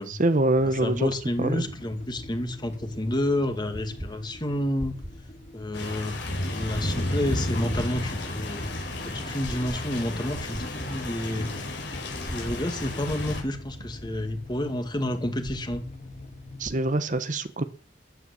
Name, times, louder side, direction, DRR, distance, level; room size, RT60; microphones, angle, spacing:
voice 1, 0.1-1.1 1.4-1.7 16.6-17.6, right 2 dB, 45° right, 11 dB, 1.0 m, -24 dB
sound 1, 0.5-16.7, left 1 dB, 40° left, 1.9 m, -45 dB
voice 2, 0.8-4.9 5.5-6.1 6.5-8.6 9.0-11.5 12.2-15.8, left 1 dB, 25° left, 6 dB, 2.4 m, -29 dB
sound 2, 2.9-16.9, equal, 15° right, 1.6 m, -44 dB
sound 3, 5.7-13.4, left 1 dB, 75° left, 5.0 m, -32 dB
14.0 x 9.4 x 8.6 m, 0.43 s
head